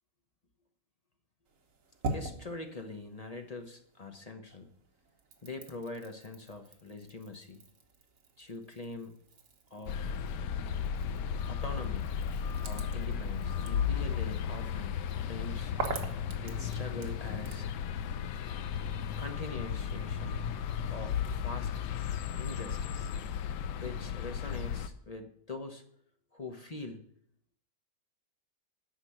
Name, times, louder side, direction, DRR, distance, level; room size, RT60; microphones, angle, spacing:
sound 1, 1.4-4.1 4.4-17.7, right 3 dB, 55° right, 1.5 m, -45 dB
voice 1, 2.1-4.7 5.4-7.6 8.4-9.1 9.7-10.1 11.4-12.1 12.6-15.7 16.4-17.7 19.2-20.5 20.9-21.7 22.4-23.1 23.8-25.8 26.3-27.0, left 3 dB, 30° left, 5 dB, 0.7 m, -43 dB
sound 2, 9.9-24.9, left 7 dB, 85° left, 1.3 m, -35 dB
9.0 x 5.8 x 8.0 m, 0.67 s
omnidirectional pair, 1.8 m